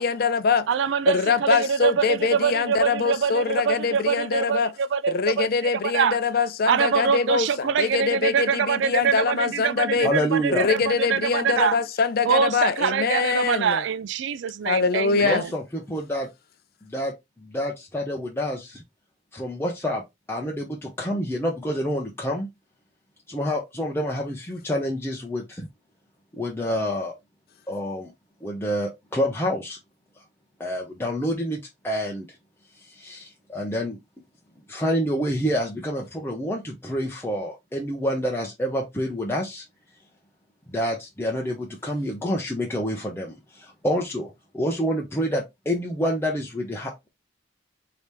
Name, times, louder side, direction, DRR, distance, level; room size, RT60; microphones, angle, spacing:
voice 1, 0.0-0.7 1.1-4.7 5.1-10.1 10.5-13.8 14.7-15.4, left 5 dB, 55° left, 0.5 m, -23 dB
voice 2, 0.7-6.2 6.6-11.8 12.3-15.5, right 7 dB, 65° right, 0.4 m, -24 dB
voice 3, 10.0-10.7 15.2-16.3 16.8-18.8 19.3-20.0 20.3-22.5 23.3-25.7 26.3-27.1 27.7-28.1 28.4-29.8 30.6-31.6 31.8-32.3 32.8-34.0 34.7-39.6 40.7-47.1, equal, 15° left, 0.6 m, -28 dB
4.9 x 2.9 x 3.3 m
head